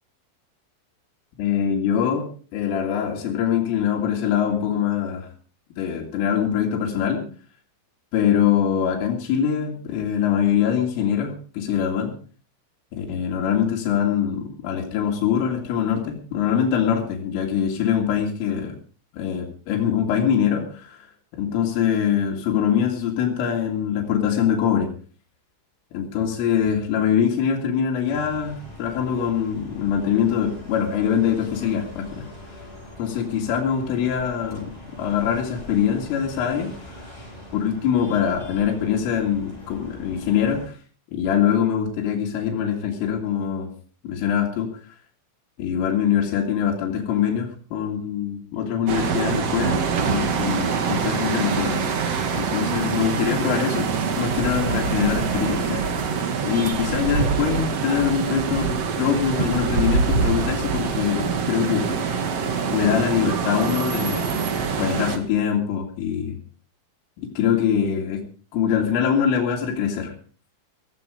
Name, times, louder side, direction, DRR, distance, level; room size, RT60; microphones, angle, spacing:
voice 1, 1.4-5.3 5.8-7.2 8.1-12.1 12.9-18.8 19.1-21.0 21.3-24.9 25.9-32.3 33.0-34.7 35.0-36.7 37.5-40.7 41.1-43.7 44.0-44.7 45.6-53.9 54.2-55.9 56.4-62.0 62.6-64.3 64.8-66.4 67.2-68.2 68.5-70.2, left 8 dB, 85° left, 0 dB, 4.8 m, -23 dB
sound 1, 28.1-40.7, left 1 dB, 10° left, 7.5 m, -42 dB
sound 2, 48.9-65.2, right 5 dB, 60° right, 1.7 m, -24 dB
16.0 x 14.5 x 5.0 m, 0.40 s
omnidirectional pair, 5.6 m